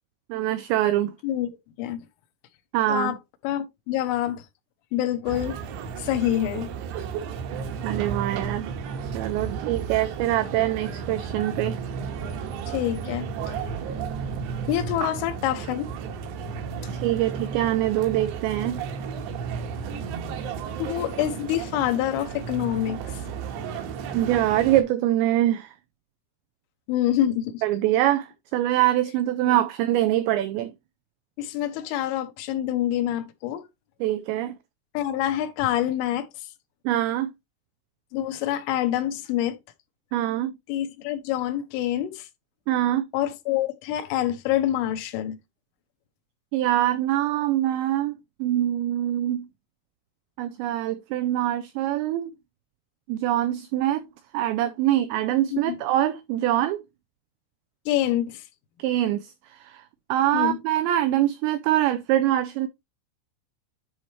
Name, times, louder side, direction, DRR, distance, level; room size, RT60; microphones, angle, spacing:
voice 1, 0.3-1.1 2.7-3.2 7.8-8.7 9.0-11.8 15.0-15.1 16.9-18.8 24.1-25.7 27.6-30.7 34.0-34.6 36.9-37.3 40.1-40.5 42.7-43.1 46.5-49.5 50.4-52.3 53.1-54.1 54.3-56.8 58.8-59.8 60.1-62.7, right 13 dB, 85° right, 2.5 m, -24 dB
voice 2, 3.4-4.4 4.9-5.6 6.0-6.7 12.7-13.3 14.7-15.9 20.8-23.2 26.9-27.6 29.5-29.6 31.4-33.6 35.0-36.5 38.1-39.6 40.7-42.3 43.1-45.4 55.5-55.8 57.9-58.5 60.3-60.6, left 12 dB, 80° left, 3.4 m, -26 dB
sound 1, 5.3-24.8, right 6 dB, 70° right, 3.1 m, -33 dB
10.5 x 4.2 x 3.1 m
omnidirectional pair, 5.7 m